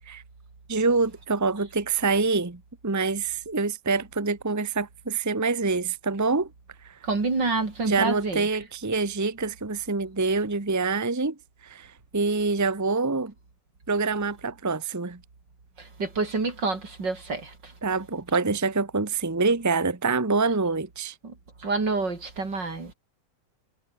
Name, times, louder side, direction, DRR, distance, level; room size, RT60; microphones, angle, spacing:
voice 1, 0.7-6.5 6.8-7.0 7.8-11.3 11.6-13.3 13.9-15.2 17.8-21.1, right 4 dB, 10° right, 1.1 m, -26 dB
voice 2, 7.0-8.4 15.8-17.7 21.2-21.3 21.6-22.9, right 3 dB, 75° right, 4.9 m, -28 dB
omnidirectional pair, 1.9 m